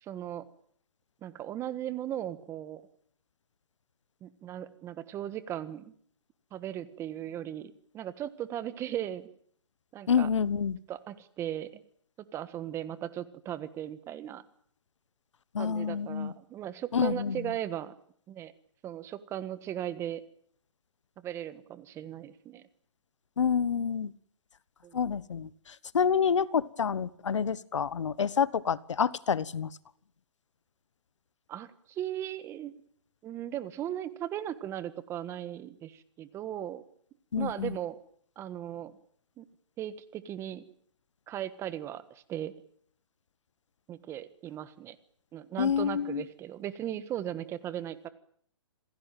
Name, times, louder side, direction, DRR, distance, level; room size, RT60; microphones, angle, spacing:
voice 1, 0.0-0.4 1.2-2.8 4.2-5.9 6.5-9.3 9.9-10.3 10.9-11.8 12.3-14.4 15.6-17.9 18.3-18.5 18.8-20.2 21.2-22.6 24.8-25.1 31.5-32.7 33.2-36.9 37.4-38.0 38.4-38.9 39.4-39.5 39.8-40.6 41.3-42.5 43.9-45.0 45.3-48.1, right 11 dB, 15° right, 14 dB, 1.4 m, -37 dB
voice 2, 10.1-10.8 15.5-16.3 16.9-17.4 23.4-24.1 24.9-25.5 25.9-29.7 37.3-37.7 45.6-46.2, left 7 dB, 80° left, 19 dB, 1.3 m, -28 dB
27.0 x 18.0 x 9.2 m, 0.63 s
hypercardioid pair, 150°, 15 cm